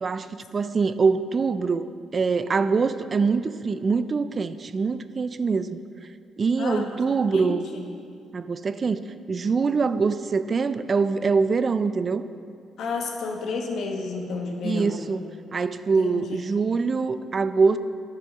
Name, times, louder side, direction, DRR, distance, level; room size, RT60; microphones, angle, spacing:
voice 1, 0.0-5.8 6.4-7.7 8.3-12.2 14.6-15.2 15.5-17.8, right 4 dB, 40° right, 13 dB, 0.3 m, -24 dB
voice 2, 6.6-7.0 7.3-7.8 12.8-15.0 16.0-16.4, left 4 dB, 70° left, 2 dB, 1.0 m, -31 dB
9.6 x 4.9 x 5.6 m, 2.4 s
cardioid pair, 90°, 0 cm